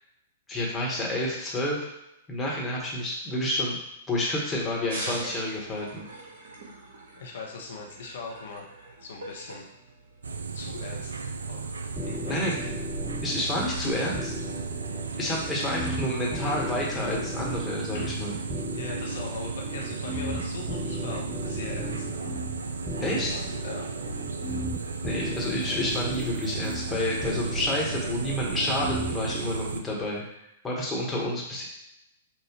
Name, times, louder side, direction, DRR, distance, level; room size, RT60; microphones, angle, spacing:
voice 1, 0.5-1.9 2.3-3.8 4.1-6.1 12.3-12.5 13.2-14.3 15.2-18.4 23.0-23.3 25.0-30.2 30.6-31.6, left 1 dB, 15° left, -4 dB, 1.4 m, -29 dB
sound 1, 4.9-10.5, right 2 dB, 60° right, 1.3 m, -41 dB
voice 2, 7.2-8.7 9.0-9.7 10.5-11.2 11.5-11.8 12.0-12.5 17.9-18.1 18.7-22.4 23.1-23.9, left 4 dB, 60° left, 0 dB, 1.0 m, -40 dB
sound 2, 10.2-29.8, right 4 dB, 75° right, 0.3 m, -34 dB
sound 3, 12.0-29.4, equal, 5° right, 0.6 m, -37 dB
5.7 x 2.6 x 3.0 m, 0.84 s
figure-of-eight pair, 105°, 0 cm